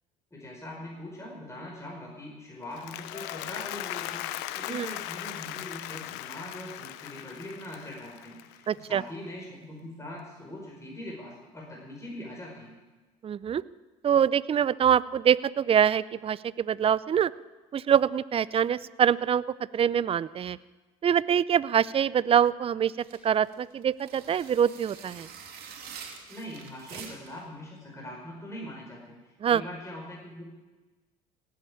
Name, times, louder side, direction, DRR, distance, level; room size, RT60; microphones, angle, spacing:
voice 1, 0.3-12.7 26.3-30.4, left 1 dB, 15° left, -2 dB, 5.1 m, -42 dB
Applause, 2.6-8.9, left 15 dB, 75° left, 0.8 m, -38 dB
voice 2, 8.7-9.0 13.2-13.6 14.0-17.3 17.7-19.4 19.7-20.6 21.0-22.9 23.2-25.3 29.4-29.6, right 8 dB, 30° right, 19 dB, 0.5 m, -24 dB
sound 1, 23.0-27.4, right 6 dB, 60° right, 2.7 m, -46 dB
17.5 x 8.7 x 8.7 m, 1.2 s
hypercardioid pair, 70°, 18 cm